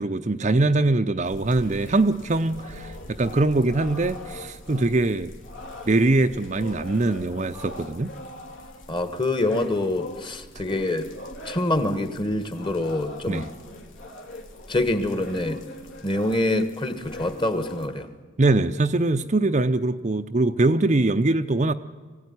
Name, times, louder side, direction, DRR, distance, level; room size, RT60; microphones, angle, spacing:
voice 1, 0.0-5.3 5.9-8.1 13.3-13.5 18.4-21.7, right 2 dB, 35° right, 0.6 m, -22 dB
sound 1, 1.2-17.9, left 1 dB, 70° left, 2.8 m, -41 dB
voice 2, 8.9-11.1 11.4-13.5 14.7-15.6 16.0-18.1, left 1 dB, 25° left, 1.4 m, -25 dB
23.0 x 16.5 x 9.6 m
head